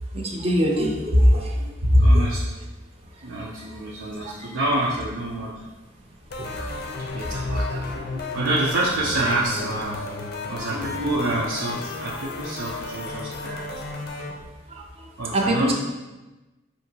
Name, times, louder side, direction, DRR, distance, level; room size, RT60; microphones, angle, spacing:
voice 1, 0.1-1.4 1.9-2.2 15.3-15.7, equal, 30° right, 0 dB, 0.5 m, -18 dB
voice 2, 2.0-2.4 3.2-5.5 6.4-10.0 10.5-13.7 15.2-15.7, right 2 dB, 85° right, -6 dB, 0.6 m, -28 dB
sound 1, 6.3-14.3, left 3 dB, 50° left, 0.5 m, -33 dB
5.1 x 2.8 x 2.8 m, 1.1 s
head